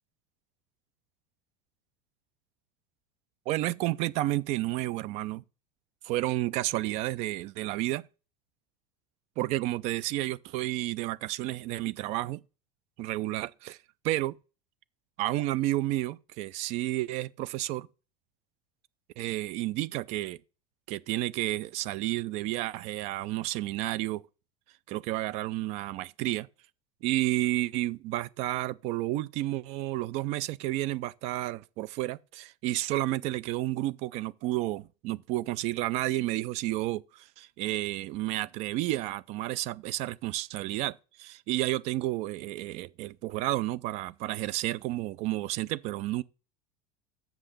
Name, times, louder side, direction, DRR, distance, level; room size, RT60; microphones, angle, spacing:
voice 1, 3.5-5.4 6.0-8.0 9.4-12.4 13.0-13.8 14.0-14.4 15.2-17.9 19.2-20.4 20.9-24.2 24.9-26.5 27.0-46.2, right 16 dB, 50° right, 0.5 m, -31 dB
7.3 x 5.7 x 6.5 m
supercardioid pair, 150°, 14 cm